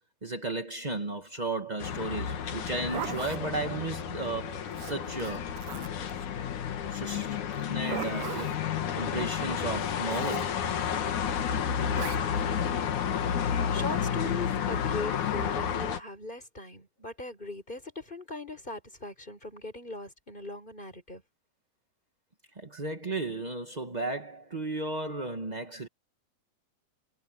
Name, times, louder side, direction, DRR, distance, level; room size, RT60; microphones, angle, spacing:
voice 1, 0.2-5.5 5.9-6.1 6.9-7.4 7.6-8.5 8.9-10.5 22.5-25.9, right 2 dB, 30° right, 0.8 m, -34 dB
sound 1, 1.8-16.0, left 8 dB, 80° left, 3.3 m, -31 dB
Zipper (clothing), 2.6-3.4 4.7-6.1 7.5-8.6 10.1-10.5 11.9-12.2, right 14 dB, 85° right, 2.3 m, -39 dB
voice 2, 13.7-21.2, left 2 dB, 15° left, 4.6 m, -39 dB
omnidirectional pair, 3.4 m